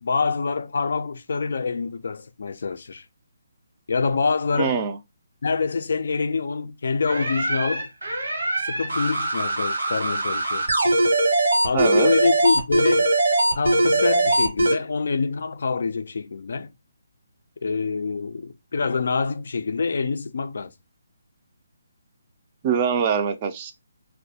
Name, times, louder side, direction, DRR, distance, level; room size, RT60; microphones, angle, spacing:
voice 1, 0.0-3.0 3.9-4.8 5.4-7.9 8.6-10.6 11.6-13.1 13.6-16.7 17.6-20.7, left 4 dB, 65° left, 0.3 m, -25 dB
voice 2, 4.5-5.0 11.7-12.1 22.6-23.7, right 7 dB, 30° right, 0.3 m, -23 dB
sound 1, 7.1-14.8, right 1 dB, 80° right, 1.0 m, -21 dB
2.2 x 2.1 x 2.7 m
hypercardioid pair, 155°, 0 cm